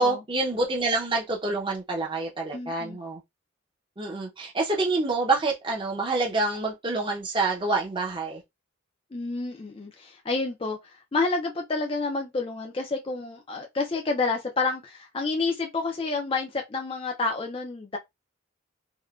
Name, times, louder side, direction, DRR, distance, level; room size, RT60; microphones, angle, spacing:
voice 1, 0.0-3.2 4.0-8.4, right 3 dB, 25° right, 0.6 m, -27 dB
voice 2, 2.5-3.0 9.1-18.0, left 3 dB, 25° left, 0.3 m, -29 dB
3.6 x 2.1 x 2.3 m
head